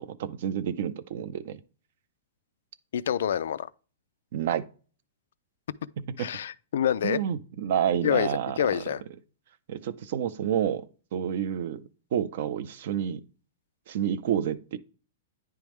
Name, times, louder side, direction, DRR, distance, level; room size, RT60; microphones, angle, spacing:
voice 1, 0.0-1.6 4.3-4.7 6.0-6.3 7.0-8.8 9.7-11.8 12.1-13.2 13.9-14.8, right 9 dB, 45° right, 0.4 m, -29 dB
voice 2, 2.9-3.7 6.2-7.2 8.0-8.3 8.6-9.0, left 9 dB, 65° left, 0.3 m, -26 dB
9.9 x 3.5 x 3.1 m
hypercardioid pair, 175°, 0 cm